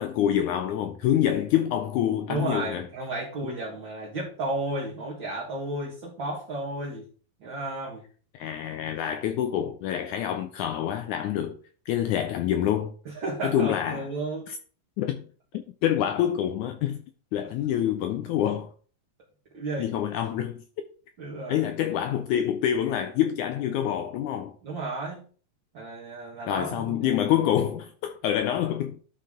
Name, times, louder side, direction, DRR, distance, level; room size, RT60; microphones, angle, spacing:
voice 1, 0.0-2.9 3.4-3.6 8.3-11.6 11.9-12.9 13.4-14.1 14.5-14.6 15.0-15.2 15.5-17.0 17.3-18.7 19.8-20.6 21.5-24.5 26.5-29.0, left 10 dB, 80° left, 1.8 m, -26 dB
voice 2, 2.3-7.1 7.4-8.0 13.0-14.5 17.4-17.5 19.5-19.9 21.2-21.7 24.6-25.3 25.7-27.3, right 2 dB, 45° right, 1.7 m, -33 dB
11.5 x 4.6 x 3.6 m
omnidirectional pair, 4.0 m